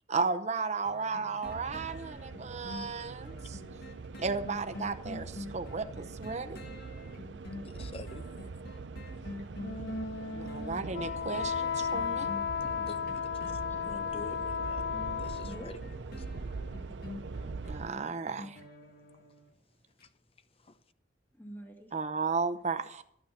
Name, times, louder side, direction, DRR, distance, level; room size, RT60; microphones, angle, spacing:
voice 1, 0.1-3.6 4.2-6.6 10.3-12.3 17.7-18.6 21.9-23.0, right 4 dB, 40° right, 0.8 m, -34 dB
sound 1, 0.8-19.5 20.0-20.1, left 2 dB, 60° left, 1.7 m, -47 dB
sound 2, 1.4-17.9, right 4 dB, 75° right, 0.6 m, -43 dB
voice 2, 2.7-3.5 7.6-8.3 12.6-14.8 15.2-15.8 16.2-16.3 20.0-20.1 20.6-20.8, left 2 dB, 30° left, 0.7 m, -48 dB
Wind instrument woodwind instrument, 9.5-15.8, left 7 dB, 80° left, 0.8 m, -34 dB
voice 3, 21.4-21.9, equal, 10° left, 1.8 m, -50 dB
13.0 x 9.2 x 5.8 m
head